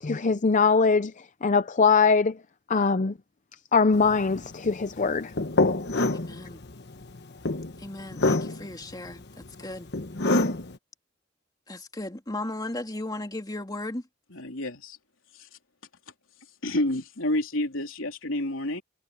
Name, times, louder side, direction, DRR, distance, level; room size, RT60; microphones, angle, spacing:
voice 1, 0.0-2.4 2.7-3.1 3.7-5.3, left 4 dB, 40° left, 0.6 m, -22 dB
sound 1, 3.9-10.8, left 2 dB, 55° left, 1.2 m, -27 dB
voice 2, 6.1-6.6 7.8-9.2 9.6-9.9 11.7-14.0, left 2 dB, 20° left, 2.4 m, -36 dB
voice 3, 14.3-15.0 15.4-15.5 16.6-18.8, left 1 dB, 80° left, 3.5 m, -29 dB
head